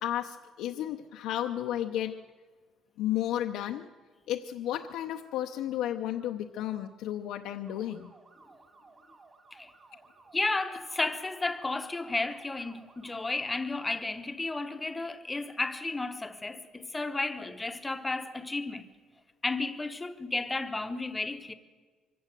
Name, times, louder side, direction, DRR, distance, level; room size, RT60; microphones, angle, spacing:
voice 1, 0.0-2.2 3.0-3.9 4.3-8.1, left 12 dB, 80° left, 0.8 m, -33 dB
sound 1, 7.6-13.8, right 3 dB, 25° right, 2.0 m, -57 dB
voice 2, 10.3-18.9 19.4-21.5, left 2 dB, 10° left, 0.9 m, -33 dB
24.5 x 15.5 x 7.6 m
cardioid pair, 170°, 0 cm